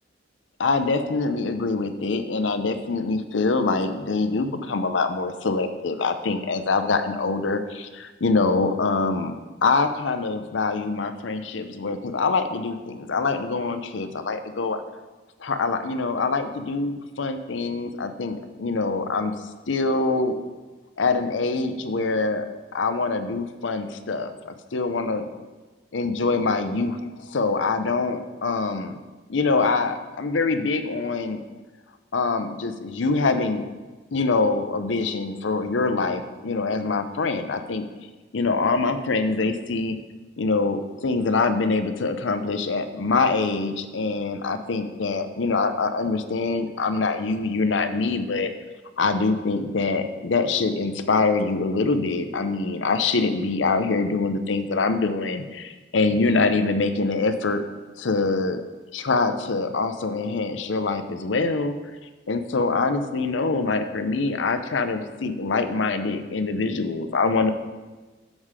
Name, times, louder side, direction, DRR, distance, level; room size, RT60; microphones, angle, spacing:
voice 1, 0.6-9.3 9.6-14.8 15.4-19.3 19.7-20.4 21.0-22.4 22.7-24.3 24.7-25.3 25.9-29.0 29.3-31.4 32.1-33.6 34.1-37.8 38.3-40.0 40.4-48.5 49.0-57.6 58.0-58.6 58.9-61.7 62.3-67.5, left 3 dB, 90° left, 9 dB, 0.6 m, -24 dB
7.4 x 6.3 x 4.9 m, 1.3 s
head